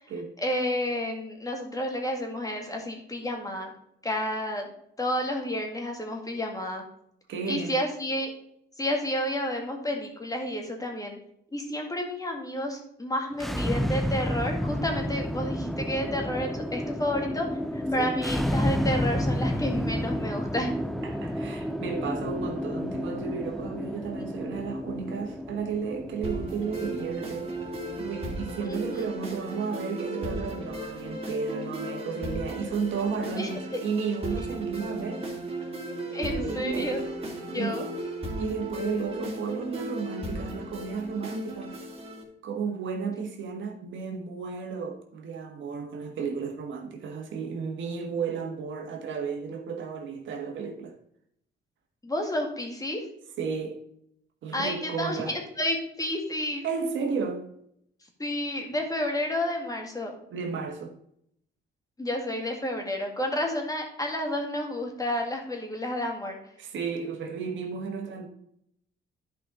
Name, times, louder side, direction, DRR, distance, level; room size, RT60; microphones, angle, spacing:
voice 1, 0.4-3.7 4.0-4.6 5.0-6.8 7.5-8.3 8.8-11.2 11.5-17.5 17.7-20.7 28.7-29.1 33.4-33.5 36.1-37.0 37.5-37.8 52.0-53.0 54.5-56.6 58.2-60.1 62.0-66.4, left 1 dB, 15° left, 2.1 m, -30 dB
voice 2, 7.3-7.8 18.0-18.1 21.0-27.5 28.0-35.3 36.2-37.0 37.5-37.9 38.4-41.8 42.4-50.9 53.4-53.8 54.4-55.3 56.6-57.5 60.3-61.0 66.6-68.3, right 5 dB, 70° right, 1.6 m, -33 dB
sound 1, 13.3-28.3, equal, ahead, 0.5 m, -31 dB
sound 2, 26.2-42.2, right 1 dB, 30° right, 3.0 m, -35 dB
11.5 x 5.3 x 3.9 m
cardioid pair, 90°, 20 cm